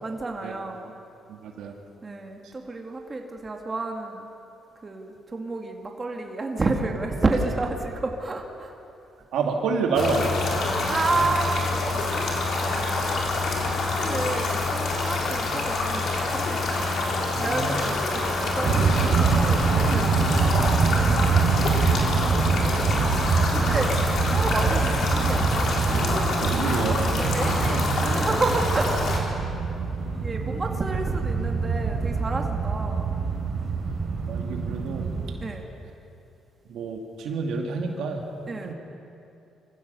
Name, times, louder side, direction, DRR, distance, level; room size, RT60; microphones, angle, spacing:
voice 1, 0.0-0.9 2.0-4.3 4.8-8.7 10.9-11.7 11.9-13.1 13.8-16.8 17.4-21.2 22.3-22.5 22.8-24.0 24.3-25.6 27.2-29.1 30.0-33.1 35.4-35.6 38.5-38.7, right 3 dB, 30° right, 2 dB, 2.2 m, -31 dB
voice 2, 1.3-1.7 9.3-11.4 13.9-14.0 17.3-17.9 21.7-22.1 22.6-22.8 23.2-23.4 26.1-27.0 34.3-35.0 36.7-38.7, right 4 dB, 80° right, 2 dB, 2.3 m, -30 dB
sound 1, 9.9-29.2, left 2 dB, 65° left, 3.6 m, -26 dB
sound 2, 18.6-35.3, right 5 dB, 55° right, 3.5 m, -25 dB
24.5 x 15.5 x 6.9 m, 2.8 s
cardioid pair, 90°, 0 cm